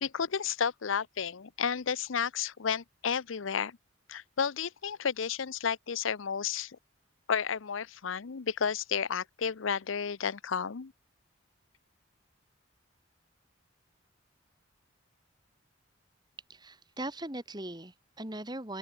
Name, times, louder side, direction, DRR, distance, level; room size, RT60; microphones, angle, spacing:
voice 1, 0.0-3.7 4.1-6.7 7.3-10.9, left 7 dB, 80° left, 0.7 m, -32 dB
voice 2, 16.5-18.8, right 1 dB, 20° right, 3.4 m, -39 dB
open air
head